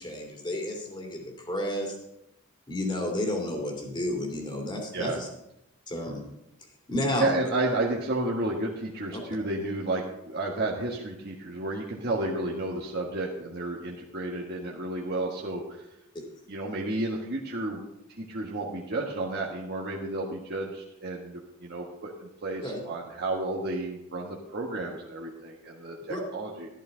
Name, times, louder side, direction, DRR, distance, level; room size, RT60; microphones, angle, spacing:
voice 1, 0.0-2.0 2.7-5.3 5.9-6.2 6.9-7.3 9.1-9.2 16.1-16.2 22.6-22.8 26.1-26.2, left 1 dB, 20° left, 1 dB, 2.6 m, -31 dB
voice 2, 7.1-15.8 16.5-17.8 18.3-26.7, right 2 dB, 45° right, -3 dB, 1.6 m, -31 dB
13.5 x 12.0 x 3.9 m, 0.85 s
head